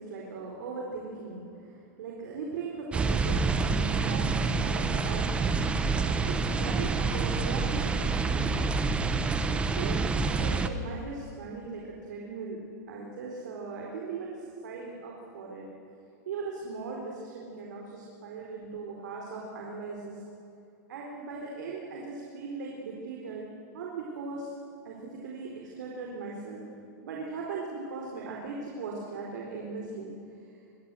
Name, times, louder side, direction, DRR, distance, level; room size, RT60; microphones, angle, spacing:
voice 1, 0.0-8.7 9.5-12.6 12.9-15.7 16.3-20.2 20.9-24.5 24.8-26.7 27.0-30.1, right 4 dB, 75° right, -2 dB, 4.2 m, -39 dB
sound 1, 2.9-10.7, right 4 dB, 10° right, 1.0 m, -27 dB
23.5 x 16.5 x 7.8 m, 2.6 s
supercardioid pair, 155°, 10 cm